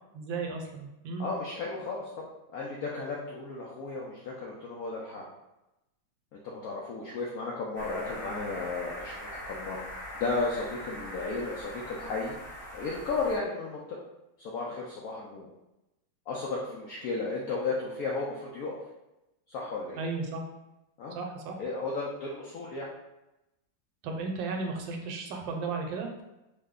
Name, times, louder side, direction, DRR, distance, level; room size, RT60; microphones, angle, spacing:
voice 1, 0.1-1.3 20.0-20.4 21.1-21.6 24.0-26.2, right 4 dB, 80° right, 3 dB, 1.3 m, -34 dB
voice 2, 1.2-2.1 2.5-5.2 6.3-9.8 10.2-12.4 12.7-14.0 14.4-15.5 16.3-18.8 19.5-20.0 21.0-21.2 21.6-22.9, left 3 dB, 80° left, -3 dB, 0.8 m, -34 dB
sound 1, 7.7-13.4, left 1 dB, 60° right, 0.5 m, -42 dB
3.2 x 2.1 x 3.5 m, 0.94 s
omnidirectional pair, 2.1 m